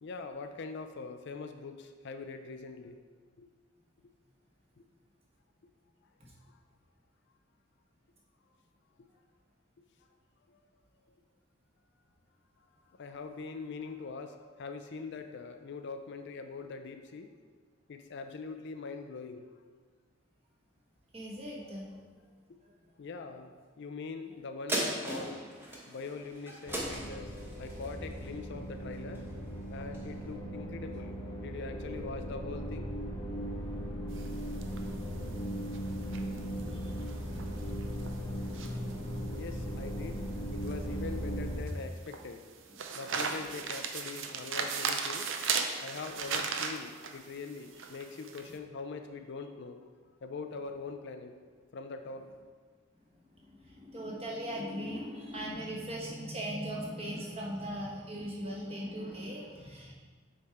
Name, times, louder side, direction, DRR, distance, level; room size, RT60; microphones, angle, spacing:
voice 1, 0.0-3.0 3.4-3.5 4.8-4.9 6.5-6.6 10.5-10.7 12.9-17.3 17.9-19.5 23.0-25.5 25.9-27.3 27.6-29.3 29.7-32.9 38.3-38.4 39.1-40.2 40.5-42.4 42.9-45.3 45.8-49.8 50.2-51.3 51.7-52.3 59.1-59.2, left 4 dB, 55° left, 7 dB, 0.4 m, -43 dB
voice 2, 21.1-22.0 22.6-22.7 36.7-37.0 40.9-41.0 43.3-43.6 48.5-48.6 53.4-59.9, equal, 30° right, -4 dB, 1.3 m, -39 dB
sound 1, 24.7-29.4 29.9-30.0, right 1 dB, 10° right, 1.0 m, -38 dB
sound 2, 26.7-41.6, equal, 25° left, 0.8 m, -38 dB
sound 3, 34.1-48.5, right 5 dB, 65° right, 0.6 m, -38 dB
8.0 x 3.5 x 4.7 m, 1.5 s
head